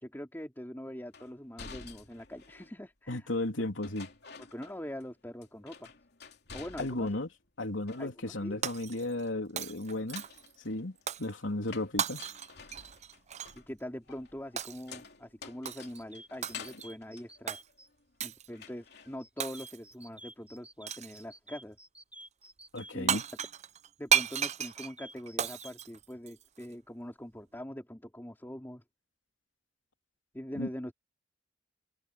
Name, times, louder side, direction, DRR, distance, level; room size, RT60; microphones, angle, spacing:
voice 1, 0.0-3.3 4.5-5.9 6.5-7.1 8.0-8.6 13.3-17.6 18.2-21.8 22.9-23.2 24.0-28.8 30.3-30.9, equal, 10° left, 3.5 m, -43 dB
sound 1, 1.1-2.8 3.8-5.1 5.4-7.3 7.6-8.5 9.8-18.2 18.5-19.2, left 5 dB, 60° left, 3.1 m, -50 dB
voice 2, 3.1-4.1 6.8-7.3 7.6-10.2 10.6-12.2 22.7-23.2 30.6-30.7, left 2 dB, 90° left, 3.2 m, -34 dB
Shatter, 8.6-9.3 9.6-10.5 11.1-11.3 12.0-13.6 14.6-14.9 15.6-16.0 16.4-16.9 17.5-17.6 18.2-18.5 19.4-19.9 20.9-21.2 22.8-22.9 23.1-26.7, right 9 dB, 35° right, 0.6 m, -34 dB
sound 2, 15.8-17.9 19.2-22.9 24.6-25.7, right 1 dB, 5° right, 3.7 m, -51 dB
head